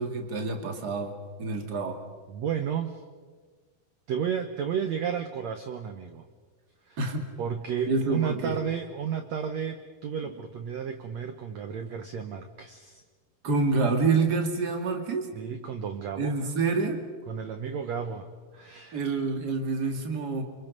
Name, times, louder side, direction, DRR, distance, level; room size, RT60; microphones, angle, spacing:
voice 1, 0.0-2.0 7.0-7.3 7.9-8.6 13.4-15.3 16.2-17.0 18.9-20.4, right 4 dB, 30° right, 3 dB, 2.1 m, -27 dB
voice 2, 2.3-3.0 4.1-6.2 6.9-7.0 7.4-13.0 15.3-16.4 17.3-18.3 18.5-19.1, right 7 dB, 90° right, 7 dB, 1.5 m, -32 dB
28.5 x 25.0 x 5.4 m, 1.5 s
omnidirectional pair, 4.5 m